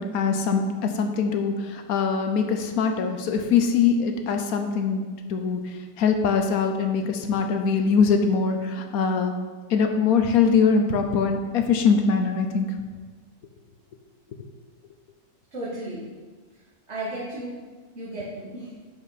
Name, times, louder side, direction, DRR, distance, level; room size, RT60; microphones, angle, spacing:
voice 1, 0.0-5.0 5.3-9.3 9.7-12.7, left 5 dB, 75° left, 5 dB, 1.2 m, -22 dB
voice 2, 15.5-16.1 16.9-17.6 18.0-18.7, right 1 dB, 50° right, -8 dB, 1.9 m, -34 dB
10.5 x 5.2 x 4.2 m, 1.4 s
omnidirectional pair, 1.6 m